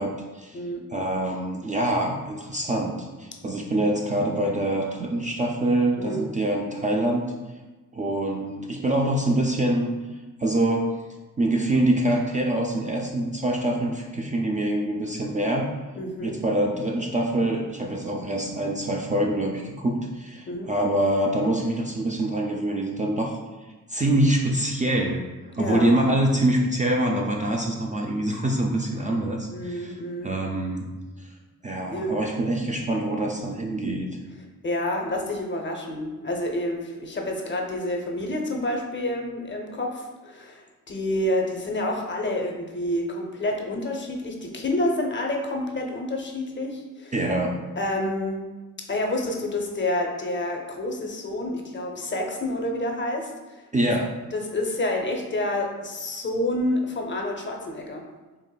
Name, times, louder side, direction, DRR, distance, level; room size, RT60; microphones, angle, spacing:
voice 1, 0.0-0.6 0.9-7.2 7.9-10.0 10.4-10.9 11.4-15.7 16.2-23.4 23.9-25.2 25.5-30.9 31.2-31.3 31.6-34.1 47.1-47.6 53.7-54.1, right 1 dB, 25° right, -1 dB, 0.3 m, -25 dB
voice 2, 16.0-16.4 20.5-20.7 25.6-25.9 29.5-30.3 31.8-32.1 34.6-40.6 40.9-47.1 47.8-48.5 48.9-53.6 54.3-58.0, left 1 dB, 35° left, 2 dB, 0.6 m, -28 dB
4.7 x 2.5 x 2.2 m, 1.2 s
cardioid pair, 85°, 32 cm